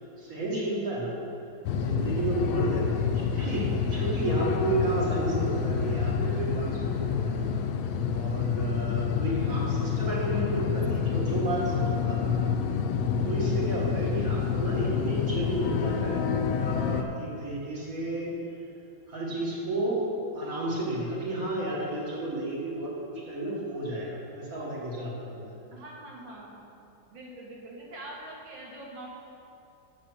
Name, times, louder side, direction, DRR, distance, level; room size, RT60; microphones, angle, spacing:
voice 1, 0.2-1.1 1.7-7.5 8.1-12.4 13.2-18.3 19.1-25.6, right 1 dB, 45° right, -5 dB, 2.2 m, -32 dB
sound 1, 1.6-17.0, left 6 dB, 85° left, 1.4 m, -28 dB
voice 2, 9.2-9.7 14.0-14.5 25.7-26.6 27.1-29.1, right 1 dB, 80° right, -3 dB, 2.3 m, -44 dB
7.6 x 6.4 x 6.2 m, 2.8 s
omnidirectional pair, 2.1 m